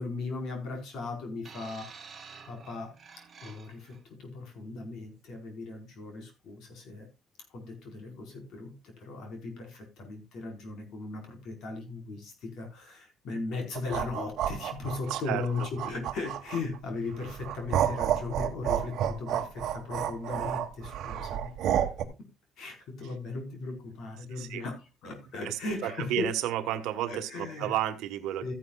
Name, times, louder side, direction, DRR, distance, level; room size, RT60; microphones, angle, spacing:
voice 1, 0.0-1.9 2.5-2.9 3.4-7.1 7.5-21.5 22.0-22.3 22.6-26.3 27.1-27.7 28.4-28.5, left 3 dB, 50° left, 4 dB, 4.7 m, -37 dB
sound 1, 1.4-4.0 4.9-5.1, right 5 dB, 25° right, 1.7 m, -49 dB
sound 2, 13.7-16.8 17.2-22.0, right 10 dB, 50° right, 1.5 m, -30 dB
voice 2, 15.1-15.7 24.3-24.6 25.4-28.5, right 12 dB, 70° right, 9 dB, 1.4 m, -32 dB
14.5 x 10.5 x 2.4 m, 0.24 s
cardioid pair, 175°, 0 cm